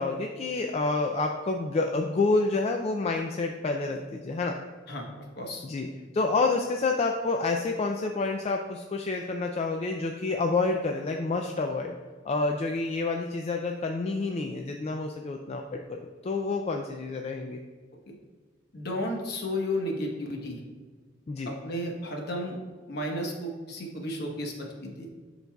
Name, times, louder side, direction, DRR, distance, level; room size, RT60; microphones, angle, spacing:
voice 1, 0.0-4.6 5.6-5.9 6.1-11.9 12.2-15.6 15.9-16.0 16.2-17.6 21.3-21.5, left 3 dB, 35° left, 3 dB, 0.3 m, -28 dB
voice 2, 18.7-20.6 21.4-22.6 22.9-25.1, left 1 dB, 55° left, 1 dB, 1.1 m, -33 dB
11.5 x 4.0 x 2.3 m, 1.5 s
head